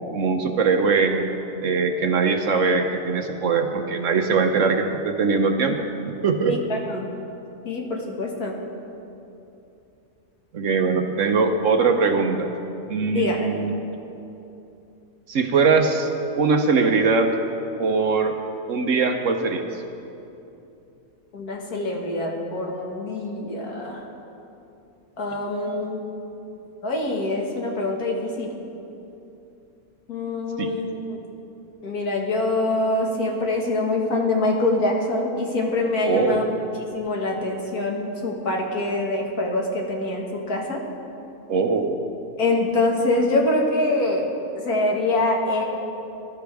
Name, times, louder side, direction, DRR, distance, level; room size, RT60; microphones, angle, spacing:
voice 1, 0.1-1.3 1.6-5.8 6.2-6.6 10.5-12.5 12.9-13.7 15.3-16.1 16.4-17.3 17.8-18.4 18.7-19.6 30.6-30.7 36.1-36.5 41.5-42.0, right 4 dB, 60° right, 5 dB, 1.1 m, -21 dB
voice 2, 6.5-7.1 7.6-8.5 13.1-13.5 21.3-24.0 25.2-26.1 26.8-28.5 30.1-31.2 31.8-36.4 36.9-40.8 42.4-44.3 44.6-45.6, left 2 dB, 75° left, -1 dB, 2.2 m, -24 dB
20.0 x 12.0 x 3.5 m, 2.8 s
omnidirectional pair, 1.6 m